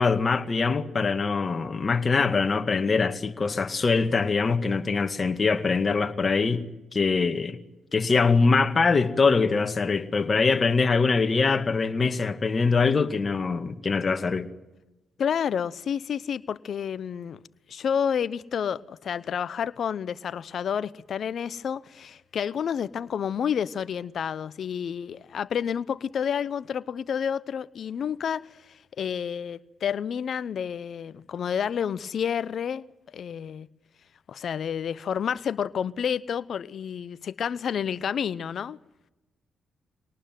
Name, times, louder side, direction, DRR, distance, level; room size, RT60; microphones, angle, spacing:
voice 1, 0.0-6.7 6.9-7.6 7.9-14.5, left 4 dB, 40° left, 2.1 m, -23 dB
voice 2, 15.2-17.4 17.7-33.7 34.3-38.8, left 8 dB, 60° left, 0.8 m, -30 dB
24.5 x 19.0 x 9.4 m
hypercardioid pair, 45°, 0 cm